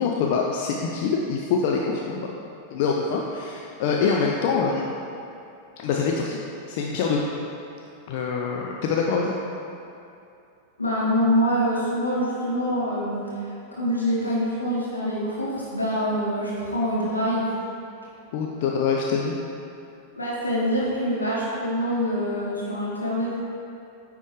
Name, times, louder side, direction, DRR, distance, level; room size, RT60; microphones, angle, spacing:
voice 1, 0.0-2.4 2.7-4.9 5.8-6.4 6.7-7.2 8.1-9.3 18.3-19.3, left 5 dB, 50° left, -1 dB, 0.4 m, -25 dB
voice 2, 10.8-13.2 13.7-17.5 20.1-23.4, equal, 80° left, -7 dB, 1.5 m, -25 dB
9.2 x 3.5 x 3.2 m, 2.7 s
figure-of-eight pair, 90°, 0 cm